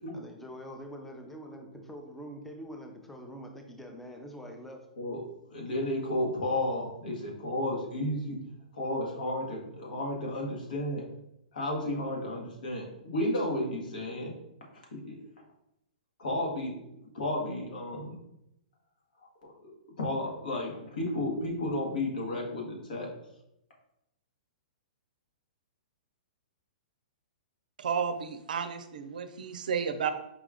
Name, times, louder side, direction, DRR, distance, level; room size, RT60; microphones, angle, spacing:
voice 1, 0.1-4.9, equal, 5° left, 3 dB, 0.5 m, -44 dB
voice 2, 5.5-8.4 8.7-11.1 11.5-14.3 14.7-15.2 16.2-16.8 17.1-18.2 19.2-19.3 19.6-23.1, left 1 dB, 75° left, -1 dB, 1.4 m, -32 dB
voice 3, 27.8-30.1, right 6 dB, 75° right, 9 dB, 0.4 m, -32 dB
4.9 x 2.4 x 3.6 m, 0.83 s
hypercardioid pair, 130°, 5 cm